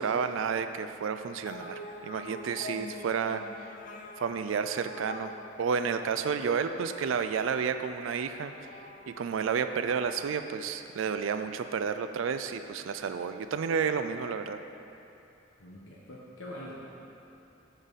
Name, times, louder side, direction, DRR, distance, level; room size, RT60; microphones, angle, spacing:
voice 1, 0.0-3.4 4.2-5.3 5.6-8.7 9.1-14.6, right 6 dB, 90° right, 9 dB, 0.4 m, -31 dB
sound 1, 1.5-11.2, left 3 dB, 40° left, 0.5 m, -46 dB
voice 2, 15.6-16.7, left 1 dB, 85° left, -5 dB, 1.1 m, -44 dB
14.0 x 5.4 x 4.1 m, 2.9 s
head